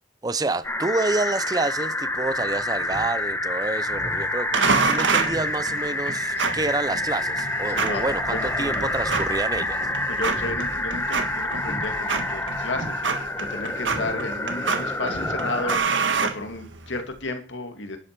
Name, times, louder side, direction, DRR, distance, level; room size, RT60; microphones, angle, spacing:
voice 1, 0.2-9.9, right 2 dB, 20° right, 0.5 m, -28 dB
sound 1, 0.6-15.8, left 2 dB, 10° left, 1.2 m, -28 dB
Speech synthesizer, 2.8-3.1 3.5-3.6 3.9-4.2 4.6-4.7 5.3-5.5 5.8-5.9 6.4-6.7 7.7-8.0 8.9-9.3 9.6-9.7 10.3-10.6 10.9-11.1 11.6-11.8 12.3-12.4 12.7-12.9 13.9-14.2 14.5-14.6 15.0-15.4 15.7-15.8, equal, 35° left, 2.2 m, -38 dB
sound 2, 4.5-17.0, right 5 dB, 75° right, 1.6 m, -28 dB
voice 2, 7.7-8.9 10.1-18.0, left 2 dB, 75° left, 2.2 m, -33 dB
11.0 x 8.3 x 5.9 m
head